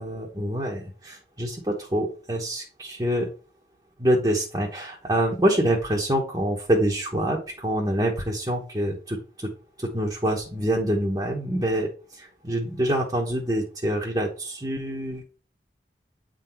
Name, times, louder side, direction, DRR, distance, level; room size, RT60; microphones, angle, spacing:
voice 1, 0.0-3.3 4.0-9.5 9.8-15.2, right 1 dB, 25° right, -2 dB, 1.1 m, -26 dB
8.9 x 3.9 x 4.4 m, 0.37 s
head